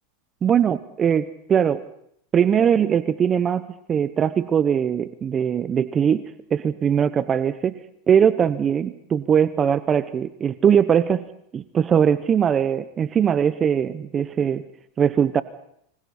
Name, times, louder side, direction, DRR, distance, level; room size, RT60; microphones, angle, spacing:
voice 1, 0.4-1.8 2.3-7.8 8.1-11.3 11.5-14.6 15.0-15.4, right 8 dB, 30° right, 14 dB, 0.9 m, -21 dB
29.5 x 25.5 x 4.4 m, 0.71 s
hypercardioid pair, 105°, 0 cm